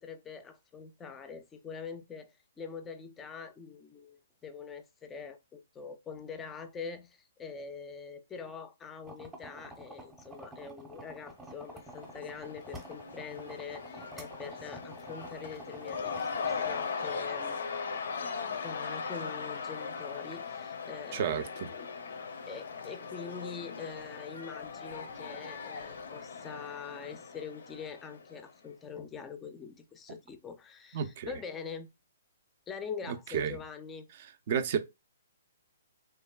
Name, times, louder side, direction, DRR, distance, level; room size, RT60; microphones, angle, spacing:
voice 1, 0.0-17.6 18.6-21.4 21.8-21.9 22.5-31.9 32.7-34.1, left 6 dB, 15° left, 0.4 m, -44 dB
sound 1, 9.0-16.8, right 1 dB, 10° right, 0.7 m, -49 dB
Cheering / Crowd, 11.6-28.5, left 5 dB, 70° left, 0.5 m, -39 dB
voice 2, 21.1-21.7 30.9-31.3 33.1-33.6 34.5-34.8, right 7 dB, 45° right, 0.4 m, -31 dB
3.1 x 2.3 x 2.2 m
hypercardioid pair, 145°, 0 cm